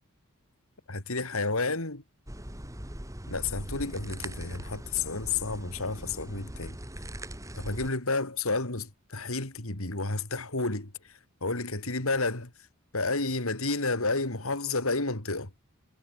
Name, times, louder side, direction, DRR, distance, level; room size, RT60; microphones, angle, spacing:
voice 1, 0.9-2.0 3.3-6.7 7.5-10.9 11.4-12.5 12.9-15.5, left 3 dB, 65° left, 3.3 m, -31 dB
sound 1, 2.3-7.9, right 1 dB, 15° right, 3.3 m, -41 dB
head